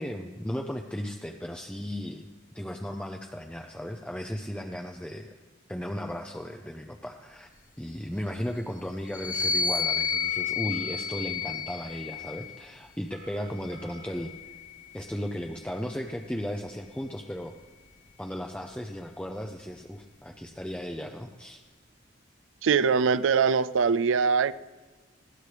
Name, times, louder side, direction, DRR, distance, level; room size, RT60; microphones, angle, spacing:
voice 1, 0.0-2.3 2.5-5.3 5.7-7.5 7.8-14.5 14.9-17.5 18.2-21.6, equal, 5° left, 3 dB, 0.6 m, -36 dB
sound 1, 9.1-12.7 13.5-15.1, left 6 dB, 45° left, 0.9 m, -31 dB
Telephone, 10.1-11.1 13.1-14.1, right 4 dB, 45° right, 2.0 m, -50 dB
voice 2, 22.6-24.5, right 5 dB, 85° right, 17 dB, 0.4 m, -22 dB
20.5 x 16.5 x 3.4 m, 1.3 s
head